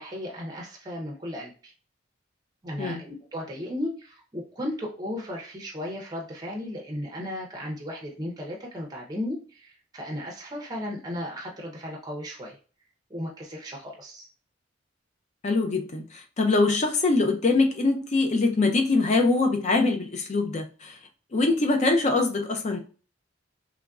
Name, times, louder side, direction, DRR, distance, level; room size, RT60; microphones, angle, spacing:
voice 1, 0.0-1.7 2.6-12.6 13.1-14.3, left 1 dB, 20° right, 0.5 m, -35 dB
voice 2, 15.4-21.0 21.3-22.8, left 3 dB, 35° left, 0.4 m, -23 dB
3.0 x 2.5 x 2.3 m
head